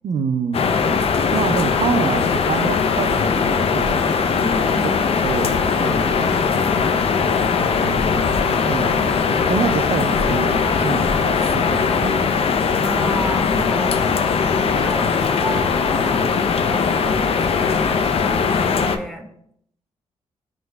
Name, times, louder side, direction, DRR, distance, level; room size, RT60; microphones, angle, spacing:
voice 1, 0.0-0.6 1.3-4.1 5.2-6.4 7.8-9.1 9.5-12.3, right 6 dB, 60° right, 11 dB, 0.4 m, -27 dB
sound 1, 0.5-19.0, left 5 dB, 50° left, 0.4 m, -20 dB
voice 2, 4.4-5.0 12.8-14.0 14.4-16.3 16.6-19.3, equal, ahead, 3 dB, 0.8 m, -31 dB
5.8 x 2.6 x 2.2 m, 0.71 s
supercardioid pair, 50°, 13 cm